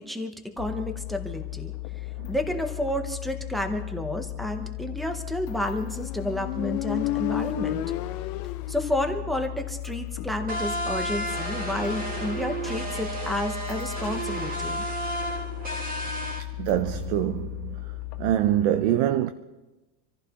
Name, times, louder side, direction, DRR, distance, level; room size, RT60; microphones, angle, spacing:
voice 1, 0.0-1.7 2.3-7.8 8.7-14.8, left 1 dB, ahead, 0.6 m, -31 dB
sound 1, 0.6-18.4, left 20 dB, 85° left, 1.5 m, -36 dB
Motorcycle, 5.8-9.4, left 13 dB, 65° left, 1.0 m, -32 dB
sound 2, 10.5-16.4, right 1 dB, 20° right, 1.8 m, -32 dB
voice 2, 16.6-17.8 18.2-19.3, right 12 dB, 45° right, 0.5 m, -24 dB
27.0 x 15.0 x 2.9 m
supercardioid pair, 165°, 48 cm